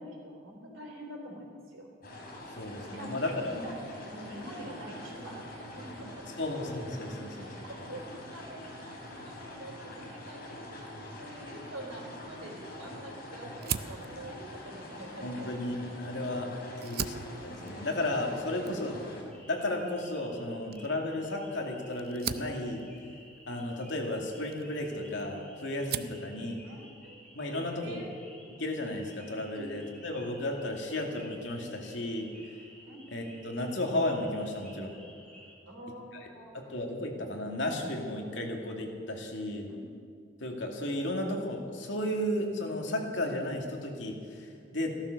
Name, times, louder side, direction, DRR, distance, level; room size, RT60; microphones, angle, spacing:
voice 1, 0.0-1.9 2.8-5.4 5.7-6.2 7.2-7.3 7.7-10.9 11.2-15.5 16.8-16.9 26.6-27.2 27.5-28.1 29.5-29.7 32.8-33.0 35.7-36.7 39.7-39.8, right 1 dB, 90° right, 0 dB, 3.7 m, -46 dB
sound 1, 2.0-19.2, left 1 dB, 50° left, 3.7 m, -44 dB
voice 2, 2.6-3.6 6.4-7.5 15.2-16.5 16.8-17.2 17.4-19.0 19.5-22.8 23.5-26.6 27.3-28.0 28.6-32.3 33.1-35.0 36.1-36.3 36.5-39.7 40.4-45.0, left 1 dB, 65° left, 1 dB, 2.4 m, -34 dB
Fire, 13.6-16.2 16.7-25.3 25.6-26.3, right 9 dB, 50° right, 0.5 m, -41 dB
sound 2, 19.3-35.5, equal, 5° left, 3.1 m, -54 dB
15.0 x 13.0 x 6.6 m, 2.3 s
head